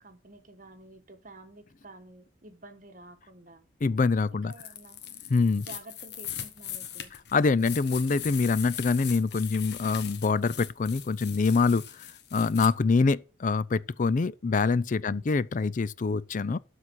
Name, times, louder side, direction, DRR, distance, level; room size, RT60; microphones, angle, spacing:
voice 1, 0.0-3.7 4.3-5.0 5.6-7.1 15.0-15.3, right 2 dB, 45° right, 1.3 m, -50 dB
voice 2, 3.8-4.5 5.3-5.6 7.3-11.9 12.3-16.6, left 4 dB, 45° left, 0.4 m, -25 dB
sound 1, 4.5-12.7, left 10 dB, 60° left, 1.2 m, -40 dB
12.5 x 4.1 x 6.1 m
head